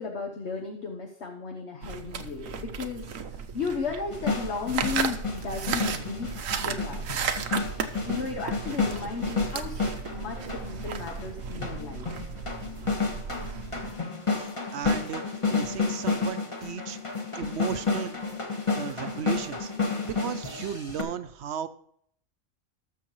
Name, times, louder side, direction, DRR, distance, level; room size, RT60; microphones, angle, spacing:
voice 1, 0.0-7.1 8.1-12.2, left 5 dB, 60° left, 1 dB, 1.2 m, -35 dB
sound 1, 1.8-13.9, right 6 dB, 90° right, 1.2 m, -35 dB
sound 2, 4.1-21.0, left 4 dB, 25° left, 1.2 m, -31 dB
voice 2, 14.3-17.0 17.4-18.2 18.7-19.7 20.1-21.7, right 8 dB, 65° right, 12 dB, 0.9 m, -35 dB
19.5 x 6.6 x 3.1 m, 0.66 s
omnidirectional pair, 1.3 m